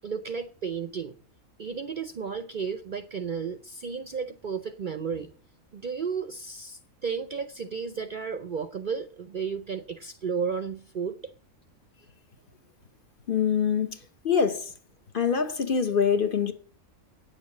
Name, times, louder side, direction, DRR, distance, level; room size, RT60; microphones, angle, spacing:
voice 1, 0.0-1.1 1.6-5.3 5.7-11.3, right 6 dB, 50° right, 0.6 m, -33 dB
voice 2, 13.3-14.0 14.2-14.7 15.1-16.5, left 6 dB, 45° left, 0.9 m, -24 dB
9.3 x 6.8 x 7.2 m
omnidirectional pair, 1.4 m